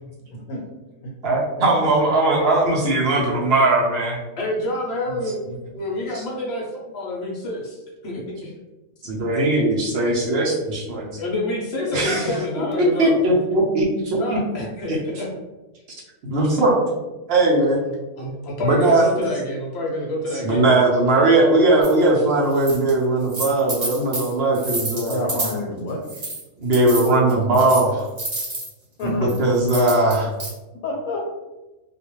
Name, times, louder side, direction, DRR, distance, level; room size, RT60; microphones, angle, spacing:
voice 1, 0.3-0.6 1.2-1.7 11.8-13.0 25.1-26.0 29.0-29.3 30.8-31.3, left 2 dB, 75° left, -2 dB, 1.0 m, -29 dB
voice 2, 1.2-4.2 6.1-6.2 9.0-11.2 11.9-12.3 13.0-14.4 14.9-15.0 16.2-16.8 17.3-17.8 18.6-19.0 20.4-25.5 26.6-28.1 29.0-30.3, right 2 dB, 65° right, -3 dB, 0.6 m, -19 dB
voice 3, 4.4-5.4 5.7-8.5 11.1-13.2 14.1-15.3 17.9-20.6, left 1 dB, 60° left, -3 dB, 0.7 m, -28 dB
sound 1, 21.8-21.9 22.5-22.9 23.2-25.6 26.1-26.4 26.7-28.7 29.3-30.5, right 2 dB, 30° right, 0.9 m, -29 dB
2.3 x 2.2 x 2.9 m, 1.1 s
omnidirectional pair, 1.5 m